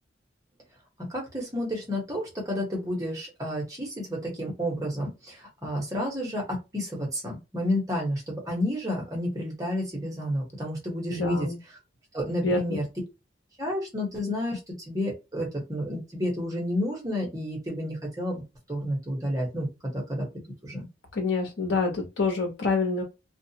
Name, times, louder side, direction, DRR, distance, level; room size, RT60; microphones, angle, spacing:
voice 1, 1.1-6.4 6.7-11.5 12.1-12.8 13.6-18.4 18.7-20.3 20.6-20.9, equal, 20° right, 1.0 m, -30 dB
voice 2, 11.1-11.6 12.4-12.8 21.1-23.0, left 3 dB, 90° left, 0.9 m, -26 dB
2.4 x 2.4 x 2.8 m
head